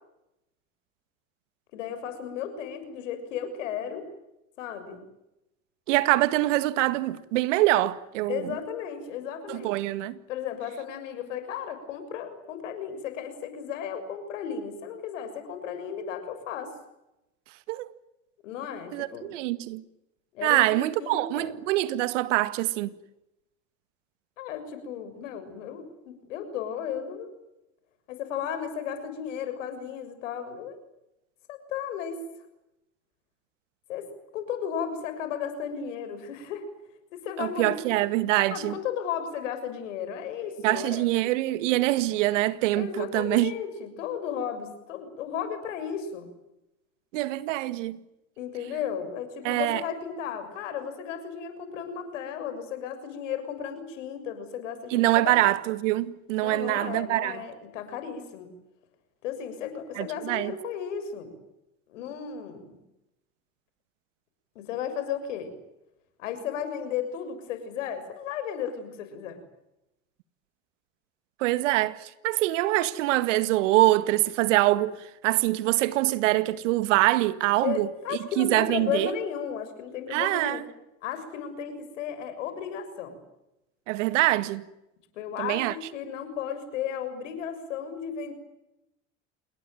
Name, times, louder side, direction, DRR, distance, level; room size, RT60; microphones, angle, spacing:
voice 1, 1.7-4.1 4.6-5.0 8.3-9.7 10.3-16.7 18.4-19.3 20.3-21.5 24.4-27.3 28.1-30.8 31.5-32.2 33.9-36.7 37.1-38.0 38.5-41.1 42.7-46.3 48.4-55.3 56.4-58.5 59.2-61.3 61.9-62.8 64.5-65.5 66.2-69.4 77.6-80.6 81.0-83.2 85.1-88.3, left 8 dB, 80° left, 6.8 m, -34 dB
voice 2, 5.9-8.5 9.5-10.2 17.7-17.9 18.9-19.8 20.4-22.9 37.4-38.8 40.6-43.5 47.1-48.0 49.4-49.8 54.9-57.4 60.0-60.5 71.4-75.0 75.2-77.9 78.4-79.1 80.1-80.6 83.9-84.6 85.4-85.7, right 17 dB, 75° right, 2.0 m, -24 dB
28.5 x 21.5 x 9.3 m
hypercardioid pair, 80°, 37 cm